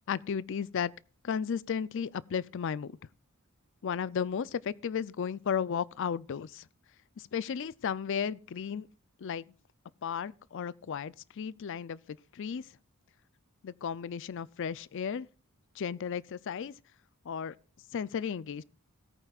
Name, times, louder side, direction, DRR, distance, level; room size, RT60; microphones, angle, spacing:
voice 1, 0.1-0.9 1.2-2.9 3.8-6.7 7.2-8.9 9.2-9.4 10.0-12.8 13.6-15.3 15.8-16.7 17.2-17.5 17.9-18.6, left 7 dB, 55° left, 0.4 m, -34 dB
17.5 x 9.0 x 2.4 m
head